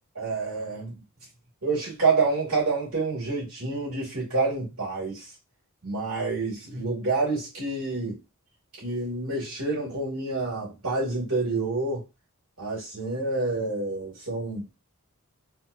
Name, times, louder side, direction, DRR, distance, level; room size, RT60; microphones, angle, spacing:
voice 1, 0.1-1.0 1.6-5.3 5.8-8.2 8.8-12.0 12.6-14.6, right 3 dB, 70° right, 2.2 m, -28 dB
4.4 x 2.4 x 2.6 m
head